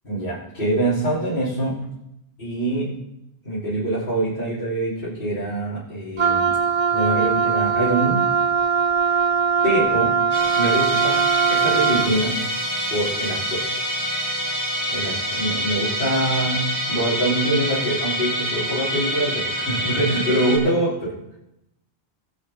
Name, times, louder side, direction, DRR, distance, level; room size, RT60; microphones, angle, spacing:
voice 1, 0.0-1.9 2.4-2.9 3.4-6.5 6.9-8.2 9.1-9.2 9.6-10.1 10.6-11.2 11.5-12.3 12.9-13.6 14.9-21.1, right 1 dB, 50° left, -13 dB, 5.2 m, -24 dB
Wind instrument woodwind instrument, 6.2-12.2, right 6 dB, 45° right, 0.5 m, -20 dB
Musical instrument, 10.3-20.6, equal, 15° right, 3.8 m, -26 dB
21.5 x 7.4 x 4.1 m, 0.85 s
omnidirectional pair, 1.1 m